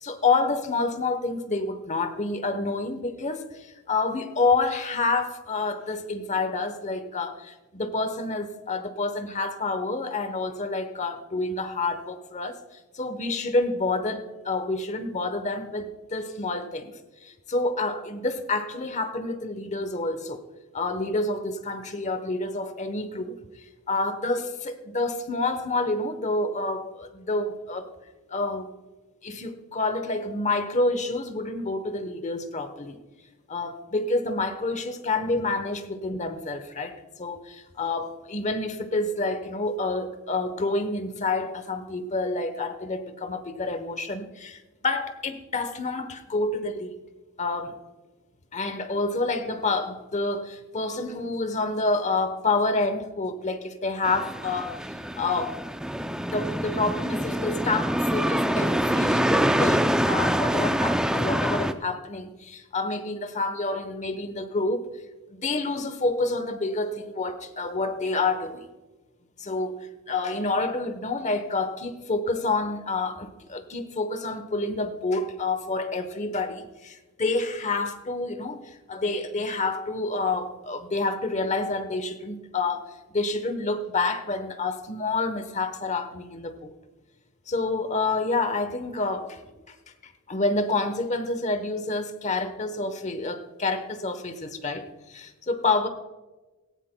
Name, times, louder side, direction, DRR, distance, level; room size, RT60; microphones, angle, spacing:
voice 1, 0.0-12.6 12.9-16.9 17.2-20.4 20.7-23.4 23.9-27.9 28.3-28.7 29.2-33.0 33.5-46.9 47.4-47.8 48.5-54.8 55.2-55.6 56.3-64.9 65.3-68.6 69.4-86.7 87.5-89.4 90.0-95.9, left 3 dB, 30° left, 9 dB, 1.0 m, -28 dB
sound 1, 54.0-61.7, equal, 5° right, 0.4 m, -25 dB
17.5 x 16.0 x 2.2 m, 1.2 s
head